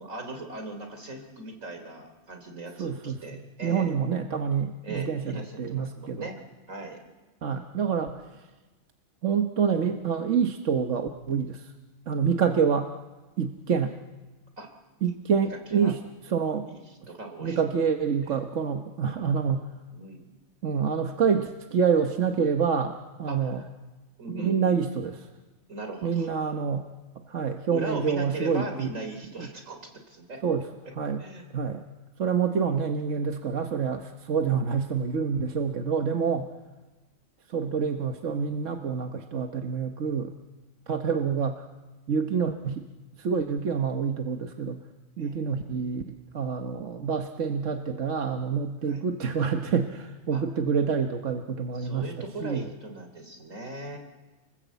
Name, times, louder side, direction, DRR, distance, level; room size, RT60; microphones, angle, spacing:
voice 1, 0.0-3.9 4.8-6.3 6.7-7.0 14.6-14.7 15.4-15.9 16.7-17.6 18.2-18.4 19.9-20.4 23.3-23.7 24.2-24.8 25.7-26.3 27.7-29.8 30.1-30.4 31.2-31.5 45.2-45.4 48.9-49.0 50.3-50.4 51.7-54.0, right 2 dB, 90° right, 5 dB, 3.7 m, -39 dB
voice 2, 2.8-3.2 3.6-6.3 7.4-8.2 9.2-11.7 12.1-12.9 13.4-13.9 15.0-16.0 16.3-16.7 17.4-19.6 20.6-23.6 24.3-25.3 26.0-26.9 27.3-28.9 29.4-29.5 30.4-30.7 31.0-31.2 31.5-31.8 32.2-36.5 37.5-40.3 40.9-41.6 42.1-42.8 43.2-44.8 45.2-52.1 52.4-52.7, right 6 dB, 70° right, 5 dB, 1.5 m, -27 dB
29.0 x 20.0 x 8.2 m, 1.2 s
omnidirectional pair, 1.3 m